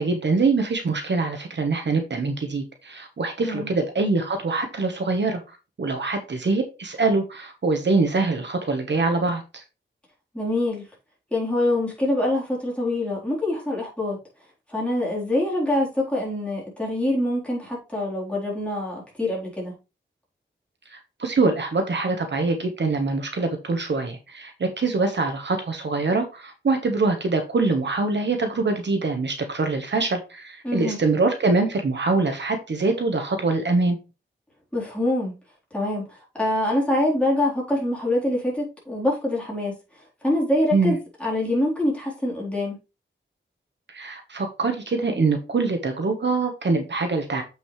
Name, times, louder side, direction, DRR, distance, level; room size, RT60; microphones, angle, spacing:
voice 1, 0.0-9.6 20.9-34.0 40.7-41.0 43.9-47.4, right 3 dB, 60° right, 1.3 m, -24 dB
voice 2, 10.3-10.8 11.3-14.2 14.7-19.7 30.6-31.0 34.7-35.3 35.7-36.0 36.3-39.7 40.2-42.8, left 1 dB, 5° left, 3.9 m, -25 dB
7.5 x 6.2 x 3.3 m
wide cardioid pair, 115°, 20 cm